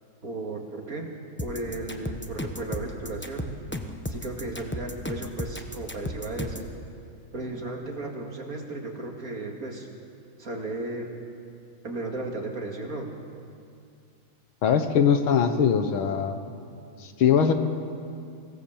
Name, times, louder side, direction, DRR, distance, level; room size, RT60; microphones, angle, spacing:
voice 1, 0.2-1.1 1.4-3.5 4.1-6.7 7.3-9.9 10.4-11.1 11.8-13.1, right 2 dB, 40° right, 1 dB, 2.5 m, -35 dB
sound 1, 1.4-6.7, left 1 dB, 15° left, 0.4 m, -34 dB
voice 2, 14.6-16.4 17.0-17.5, left 7 dB, 80° left, 8 dB, 2.0 m, -21 dB
24.5 x 17.0 x 7.3 m, 2.4 s
omnidirectional pair, 2.3 m